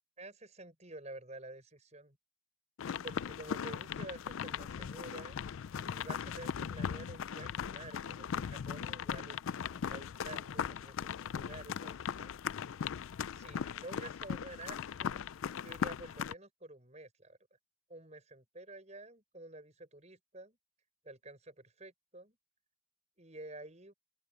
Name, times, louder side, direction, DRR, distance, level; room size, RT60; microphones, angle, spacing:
voice 1, 0.2-2.2 3.0-5.5 5.8-9.4 9.7-12.3 13.3-15.3 15.6-17.4 17.9-20.6 21.0-22.4 23.2-23.9, right 2 dB, 30° right, 6.9 m, -50 dB
sound 1, 2.8-16.3, left 7 dB, 70° left, 0.4 m, -39 dB
open air
head